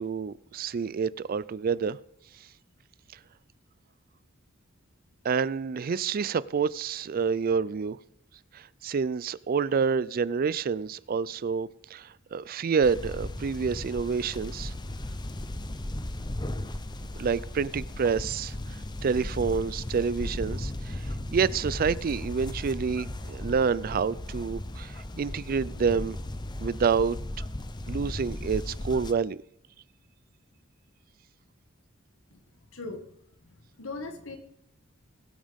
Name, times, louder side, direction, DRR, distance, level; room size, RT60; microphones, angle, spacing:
voice 1, 0.0-2.0 5.2-8.0 8.5-14.7 17.1-26.2 26.6-27.2 27.9-29.4, right 5 dB, 45° right, 0.4 m, -28 dB
sound 1, 12.8-29.1, left 1 dB, 20° left, 0.7 m, -36 dB
voice 2, 32.7-33.0 33.4-34.4, left 3 dB, 80° left, 1.8 m, -39 dB
21.5 x 9.0 x 3.6 m
head